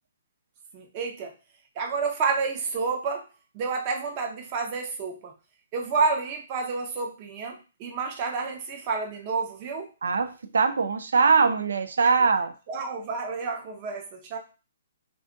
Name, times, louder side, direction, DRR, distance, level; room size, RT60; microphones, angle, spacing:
voice 1, 0.7-1.3 1.8-3.3 3.5-5.3 5.7-9.9 12.7-14.4, right 4 dB, 25° right, 2 dB, 0.5 m, -29 dB
voice 2, 10.0-12.5, right 4 dB, 85° right, 9 dB, 0.4 m, -22 dB
2.5 x 2.3 x 3.7 m, 0.32 s
hypercardioid pair, 175°, 0 cm